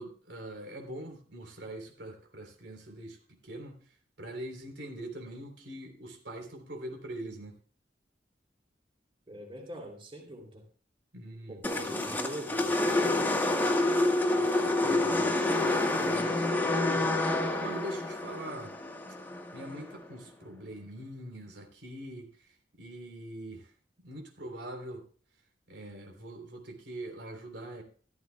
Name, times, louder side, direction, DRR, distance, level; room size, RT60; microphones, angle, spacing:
voice 1, 0.0-3.2 3.4-3.8 4.2-7.6 11.1-11.9 14.4-15.3 15.6-17.3 17.6-18.7 19.5-22.3 22.8-23.7 24.0-25.0 25.7-27.8, right 1 dB, 80° right, 3 dB, 3.6 m, -43 dB
voice 2, 9.3-10.6 11.5-13.3, right 1 dB, 30° right, 0 dB, 3.1 m, -43 dB
sound 1, 11.6-19.9, left 2 dB, 10° left, 1.5 m, -28 dB
14.0 x 14.0 x 2.3 m, 0.43 s
head